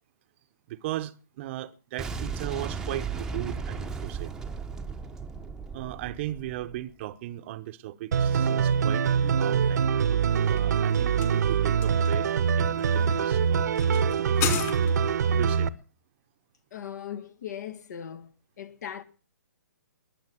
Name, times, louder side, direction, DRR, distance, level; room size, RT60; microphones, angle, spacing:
voice 1, 0.7-4.3 5.7-9.9 10.4-14.6 15.3-15.7, right 14 dB, 35° right, 0.9 m, -37 dB
Boom, 2.0-6.9, right 5 dB, 5° right, 0.9 m, -36 dB
sound 1, 8.1-15.7, right 7 dB, 60° right, 0.9 m, -24 dB
sound 2, 10.2-15.3, left 10 dB, 30° left, 3.3 m, -36 dB
voice 2, 16.7-18.3 18.6-19.0, left 9 dB, 60° left, 1.6 m, -38 dB
21.5 x 7.3 x 7.6 m
figure-of-eight pair, 135°, 11 cm